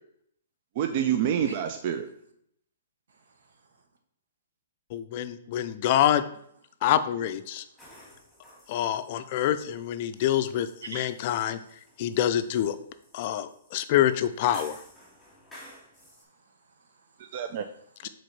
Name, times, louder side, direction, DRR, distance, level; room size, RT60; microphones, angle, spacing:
voice 1, 0.8-2.1 17.2-17.6, right 9 dB, 45° right, 0.4 m, -27 dB
voice 2, 3.1-3.9 6.9-7.9 10.8-11.1 11.6-11.7 15.9-18.1, right 3 dB, 80° right, 1.1 m, -48 dB
voice 3, 4.9-6.2 6.8-7.6 8.7-11.6 12.0-12.8 13.1-14.8 18.0-18.1, left 11 dB, 45° left, 0.4 m, -26 dB
sound 1, 7.8-16.2, equal, ahead, 2.4 m, -53 dB
4.9 x 4.1 x 4.7 m
hypercardioid pair, 150°, 0 cm